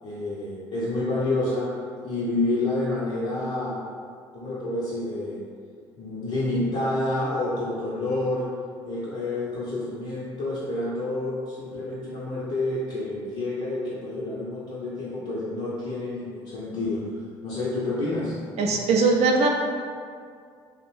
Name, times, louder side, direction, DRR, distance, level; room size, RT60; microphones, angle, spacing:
voice 1, 0.0-1.7 2.0-3.8 4.3-5.4 6.0-8.5 8.8-17.0 17.4-18.4, left 2 dB, 50° left, -9 dB, 0.6 m, -28 dB
voice 2, 18.6-19.5, right 3 dB, 50° right, 1 dB, 0.4 m, -20 dB
2.5 x 2.0 x 3.1 m, 2.1 s
hypercardioid pair, 55°, 13 cm